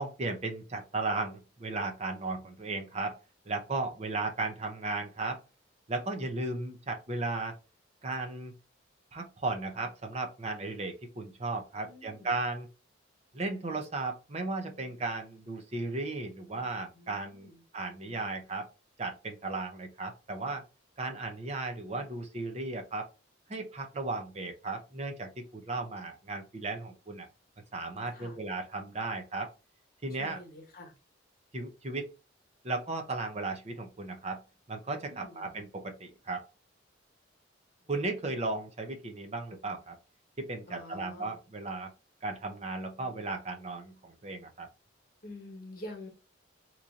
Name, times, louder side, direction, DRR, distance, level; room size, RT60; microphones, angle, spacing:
voice 1, 0.0-3.2 3.5-5.4 5.9-7.5 8.0-8.5 9.1-12.7 13.3-17.5 17.7-18.7 19.0-20.6 21.0-23.1 23.5-27.3 27.7-29.5 30.0-30.4 31.5-32.1 32.6-34.4 34.7-36.4 37.9-39.9 40.4-41.9 42.2-44.7, right 3 dB, 35° right, 0.7 m, -35 dB
voice 2, 11.8-12.4 16.9-17.6 28.1-28.4 30.2-30.9 35.0-35.5 37.8-38.0 40.7-41.4 45.2-46.1, left 1 dB, 50° left, 1.2 m, -47 dB
3.0 x 2.7 x 3.6 m
head